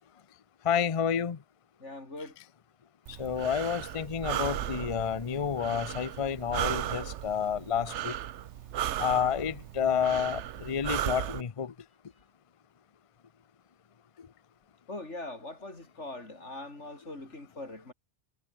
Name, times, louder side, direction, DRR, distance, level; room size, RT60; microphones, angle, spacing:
voice 1, 0.7-1.4 3.2-8.1 9.0-11.7, left 8 dB, 35° left, 0.7 m, -30 dB
voice 2, 1.8-2.3 14.9-17.9, left 2 dB, 80° left, 5.1 m, -41 dB
Breathing, 3.1-11.4, right 12 dB, 80° right, 1.0 m, -36 dB
omnidirectional pair, 1.2 m